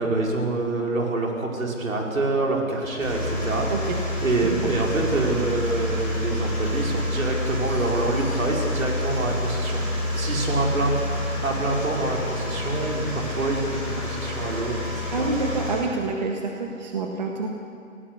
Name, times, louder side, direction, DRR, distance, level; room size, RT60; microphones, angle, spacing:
voice 1, 0.0-3.7 4.2-9.8 10.2-15.3, right 2 dB, 80° right, 0 dB, 5.4 m, -26 dB
sound 1, 3.0-15.8, left 1 dB, 5° right, 6.1 m, -28 dB
voice 2, 3.7-4.0 4.4-4.7 15.1-17.5, right 3 dB, 30° right, 2 dB, 1.7 m, -28 dB
20.5 x 17.5 x 8.3 m, 2.5 s
hypercardioid pair, 170°, 40 cm